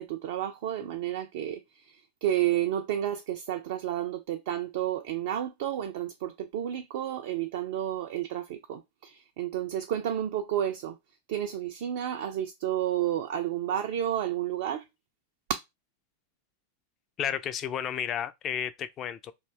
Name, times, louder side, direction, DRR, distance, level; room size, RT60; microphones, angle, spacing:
voice 1, 0.0-11.0 11.3-14.8, right 11 dB, 50° right, 0.3 m, -31 dB
voice 2, 17.2-19.3, left 9 dB, 30° left, 0.3 m, -32 dB
2.5 x 2.2 x 3.2 m
figure-of-eight pair, 90°, 0 cm